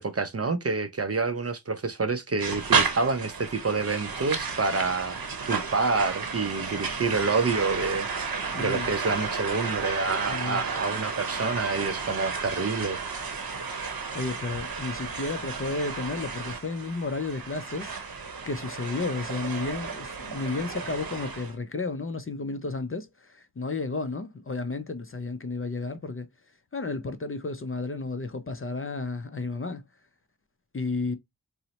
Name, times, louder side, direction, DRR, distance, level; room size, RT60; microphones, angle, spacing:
voice 1, 0.0-5.2 5.5-13.3, right 4 dB, 35° right, 0.4 m, -28 dB
sound 1, 2.4-21.5, right 5 dB, 55° right, 0.8 m, -32 dB
voice 2, 8.5-8.9 10.3-10.6 14.1-17.9 18.5-26.3 26.7-29.8 30.7-31.2, left 3 dB, 35° left, 0.4 m, -32 dB
3.9 x 2.0 x 2.7 m
wide cardioid pair, 50°, 42 cm